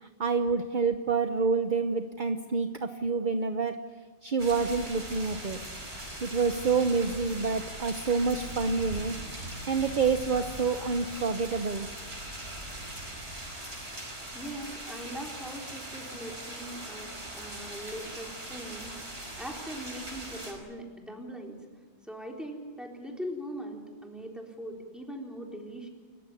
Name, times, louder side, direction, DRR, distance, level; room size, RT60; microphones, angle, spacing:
voice 1, 0.0-3.8 4.2-5.6 6.2-9.1 9.6-11.9, right 4 dB, 45° right, 8 dB, 1.0 m, -28 dB
sound 1, 4.4-20.5, right 1 dB, 75° right, 5.4 m, -40 dB
voice 2, 14.3-19.0 19.4-21.7 22.1-25.9, equal, ahead, 1 dB, 3.9 m, -41 dB
28.5 x 15.0 x 9.9 m, 1.5 s
omnidirectional pair, 1.2 m